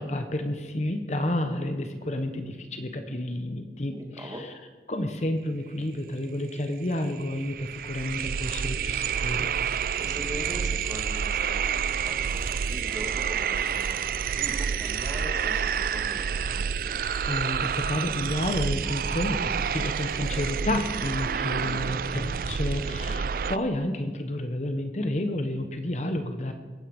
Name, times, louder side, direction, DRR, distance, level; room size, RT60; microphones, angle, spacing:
voice 1, 0.0-4.4 4.9-9.5 17.2-26.5, left 1 dB, 40° left, 7 dB, 1.0 m, -30 dB
voice 2, 3.9-4.4 10.0-11.6 12.0-14.0 14.3-16.7 22.9-23.1, equal, 20° right, 2 dB, 2.1 m, -40 dB
sound 1, 6.6-6.7 6.9-23.6, right 7 dB, 50° right, 0.4 m, -29 dB
22.5 x 9.3 x 5.3 m, 1.4 s
head